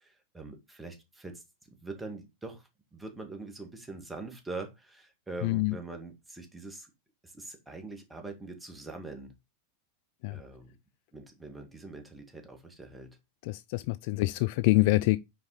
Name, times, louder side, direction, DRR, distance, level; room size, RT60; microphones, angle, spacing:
voice 1, 0.0-6.9 7.2-9.3 10.3-10.8 11.1-13.1, right 3 dB, 10° right, 1.8 m, -43 dB
voice 2, 5.4-5.8 10.2-10.4 13.4-15.2, left 20 dB, 50° left, 0.3 m, -26 dB
6.2 x 4.7 x 4.0 m
figure-of-eight pair, 90°, 0 cm